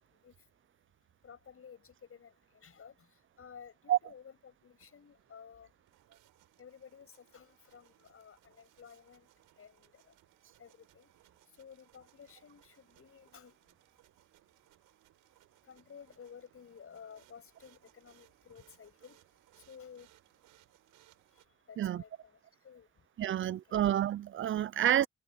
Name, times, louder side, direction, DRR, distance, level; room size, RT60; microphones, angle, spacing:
voice 1, 1.2-2.9 3.4-5.7 6.6-9.3 9.6-9.9 10.6-11.1 11.6-13.6 15.7-19.2 19.7-20.1 21.7-22.4 22.6-22.9 23.7-23.8, left 7 dB, 45° left, 7.9 m, -54 dB
sound 1, 4.6-21.5, right 15 dB, 90° right, 6.0 m, -67 dB
voice 2, 23.2-25.1, right 11 dB, 40° right, 0.5 m, -29 dB
cardioid pair, 90°, 30 cm